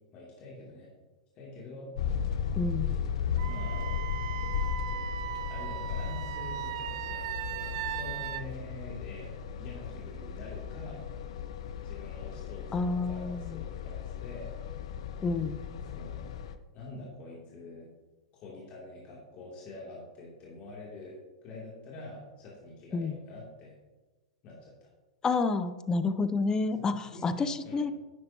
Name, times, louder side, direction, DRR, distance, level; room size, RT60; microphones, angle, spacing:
voice 1, 0.1-0.9 1.3-1.9 3.5-3.9 5.5-9.3 9.6-11.0 11.8-14.5 15.8-16.2 16.7-17.9 18.3-21.1 21.4-23.7 24.4-24.9 26.7-27.9, left 2 dB, 40° left, -5 dB, 2.8 m, -46 dB
sound 1, 1.9-16.6, left 7 dB, 65° left, 0.7 m, -36 dB
voice 2, 2.6-3.0 12.7-13.6 15.2-15.6 22.9-23.2 25.2-27.9, left 3 dB, 20° left, 11 dB, 0.6 m, -29 dB
Wind instrument woodwind instrument, 3.4-8.4, right 12 dB, 55° right, 0.4 m, -37 dB
11.0 x 9.5 x 2.9 m, 1.2 s
hypercardioid pair, 105°, 3 cm